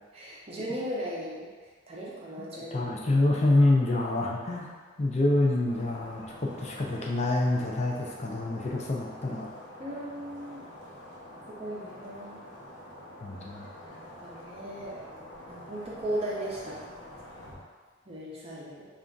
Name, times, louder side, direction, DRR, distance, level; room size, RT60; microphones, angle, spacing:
voice 1, 0.1-1.5 1.9-3.1 9.8-10.6 11.5-12.4 13.8-15.0 15.5-16.8 18.1-18.9, right 1 dB, 30° right, -5 dB, 0.7 m, -37 dB
voice 2, 2.5-4.7 5.0-9.5 13.2-13.6, left 2 dB, 35° left, -2 dB, 0.5 m, -26 dB
sound 1, 5.6-17.6, left 1 dB, 80° left, 1.0 m, -47 dB
3.4 x 2.5 x 3.8 m, 1.5 s
head